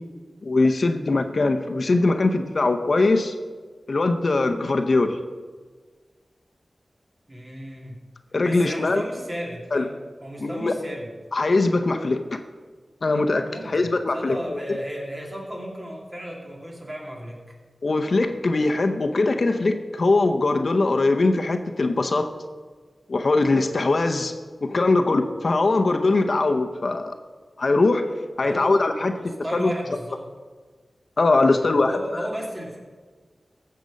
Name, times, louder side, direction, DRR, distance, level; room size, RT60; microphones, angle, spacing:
voice 1, 0.4-3.3 3.9-5.2 8.3-9.0 9.7-9.9 10.4-10.7 11.3-12.4 13.0-14.3 17.8-22.3 23.1-24.3 24.6-27.1 27.6-28.1 28.4-29.1 29.5-29.7 31.2-31.9, left 3 dB, 60° left, 6 dB, 0.8 m, -21 dB
voice 2, 7.3-8.0 8.4-11.1 13.4-17.5 28.4-30.2 31.5-32.8, equal, 30° right, -2 dB, 2.6 m, -34 dB
15.0 x 6.7 x 5.2 m, 1.5 s
wide cardioid pair, 70°, 0 cm